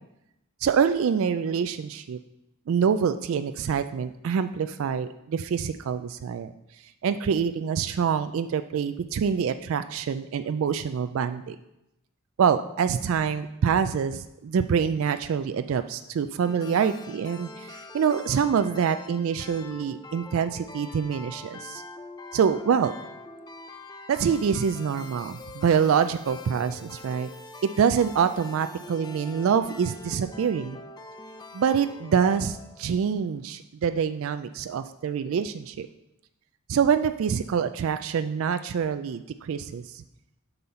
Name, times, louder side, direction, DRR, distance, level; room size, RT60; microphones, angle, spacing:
voice 1, 0.6-2.2 2.7-6.5 7.0-11.6 12.4-21.8 22.3-22.9 24.1-27.3 27.6-30.8 31.5-35.9 36.7-40.0, right 7 dB, 70° right, 10 dB, 0.3 m, -25 dB
sound 1, 16.4-33.0, left 2 dB, 20° left, 0.4 m, -44 dB
7.9 x 5.6 x 4.3 m, 0.86 s
head